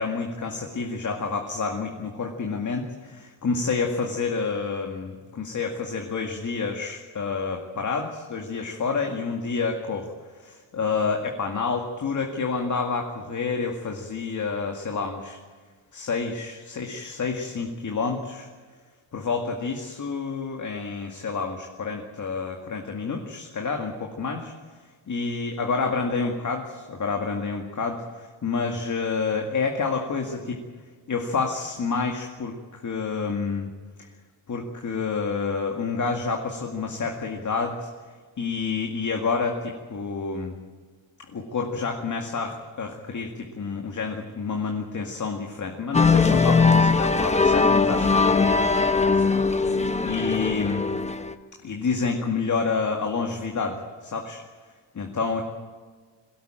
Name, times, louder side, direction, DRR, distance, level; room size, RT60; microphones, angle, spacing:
voice 1, 0.0-15.4 15.9-18.5 19.1-24.5 25.1-30.6 31.1-33.7 34.5-37.9 38.4-40.5 41.3-50.8 51.6-54.4 54.9-55.4, left 4 dB, 35° left, 2 dB, 2.1 m, -29 dB
sound 1, 45.9-51.3, left 4 dB, 15° left, 0.9 m, -20 dB
22.5 x 17.5 x 9.0 m, 1.5 s
wide cardioid pair, 160°, 49 cm